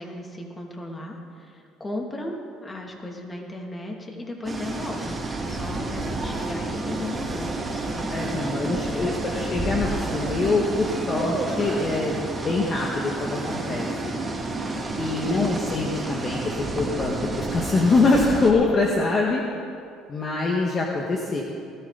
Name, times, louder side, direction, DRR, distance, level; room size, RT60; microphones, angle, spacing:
voice 1, 0.0-2.3 2.6-8.9 14.7-15.1, left 1 dB, 20° left, 0 dB, 2.8 m, -36 dB
sound 1, 4.4-18.5, right 2 dB, 20° right, 2.6 m, -30 dB
voice 2, 8.1-14.1 15.0-19.4 20.1-21.4, left 3 dB, 35° left, -1 dB, 1.8 m, -24 dB
19.0 x 14.5 x 4.2 m, 2.4 s
supercardioid pair, 80°, 0 cm